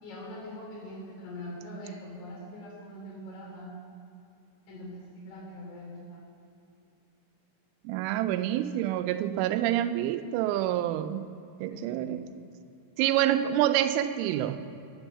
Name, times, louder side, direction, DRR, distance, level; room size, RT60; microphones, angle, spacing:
voice 1, 0.0-3.7 4.7-6.3 11.7-12.1, left 1 dB, 85° left, -3 dB, 5.8 m, -42 dB
voice 2, 7.8-11.3 11.6-12.2 13.0-14.8, right 12 dB, 85° right, 9 dB, 3.1 m, -27 dB
10.5 x 9.0 x 7.1 m, 2.7 s
omnidirectional pair, 5.6 m